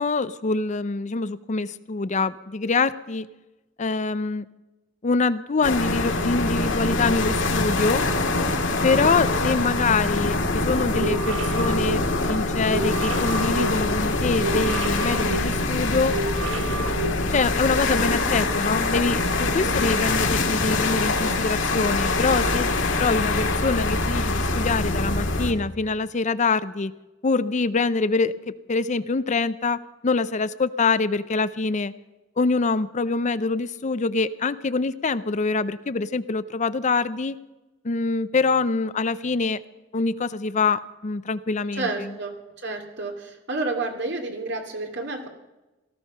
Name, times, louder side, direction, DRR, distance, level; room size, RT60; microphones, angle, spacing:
voice 1, 0.0-3.3 3.8-4.4 5.0-8.1 8.8-12.0 12.3-16.2 17.3-22.7 23.0-26.9 27.2-31.9 32.4-37.4 37.8-39.6 39.9-42.1, left 4 dB, 40° left, 14 dB, 0.6 m, -25 dB
sound 1, 5.6-25.5, left 2 dB, 80° left, 1.9 m, -24 dB
sound 2, 10.9-17.8, right 3 dB, 85° right, 1.4 m, -32 dB
voice 2, 19.4-19.8 41.7-42.4 42.6-45.3, right 3 dB, 65° right, 3 dB, 2.6 m, -30 dB
18.0 x 14.5 x 5.6 m, 1.1 s
head